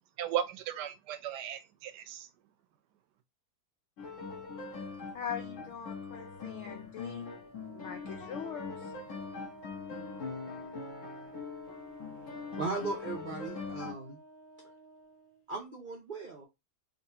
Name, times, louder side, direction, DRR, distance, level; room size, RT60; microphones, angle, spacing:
voice 1, 0.2-2.3, right 10 dB, 85° right, 1.2 m, -36 dB
sound 1, 4.0-13.9, left 4 dB, 55° left, 1.2 m, -42 dB
voice 2, 5.1-7.3 7.7-8.9, left 7 dB, 75° left, 0.6 m, -42 dB
Wind instrument woodwind instrument, 7.5-15.3, right 2 dB, 25° left, 0.9 m, -52 dB
voice 3, 12.6-14.2 15.5-16.5, right 3 dB, 65° right, 0.4 m, -37 dB
3.6 x 3.0 x 2.7 m
omnidirectional pair, 1.8 m